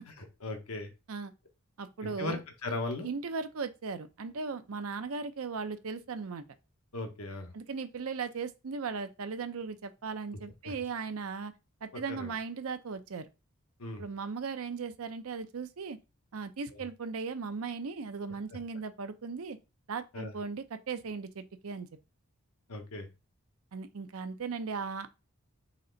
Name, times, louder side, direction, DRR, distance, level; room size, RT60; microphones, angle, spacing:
voice 1, 0.0-0.9 2.0-3.1 6.9-7.5 10.6-10.7 11.9-12.3 13.8-14.0 18.5-18.6 20.1-20.3 22.7-23.1, left 2 dB, 90° left, 1.1 m, -38 dB
voice 2, 1.8-2.4 3.0-6.4 7.5-11.5 11.8-13.3 14.0-16.0 16.3-19.6 19.9-21.9 23.7-25.1, right 5 dB, 75° right, 0.6 m, -37 dB
4.2 x 3.2 x 3.9 m
head